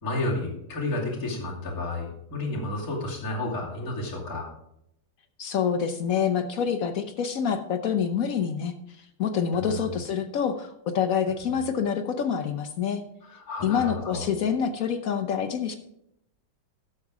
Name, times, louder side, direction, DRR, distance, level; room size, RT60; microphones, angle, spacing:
voice 1, 0.0-4.5 9.6-9.9 13.3-14.2, left 2 dB, 45° left, -4 dB, 2.9 m, -31 dB
voice 2, 5.4-13.0 13.6-15.8, left 7 dB, 70° left, 7 dB, 0.8 m, -27 dB
12.0 x 6.7 x 4.8 m, 0.78 s
omnidirectional pair, 2.3 m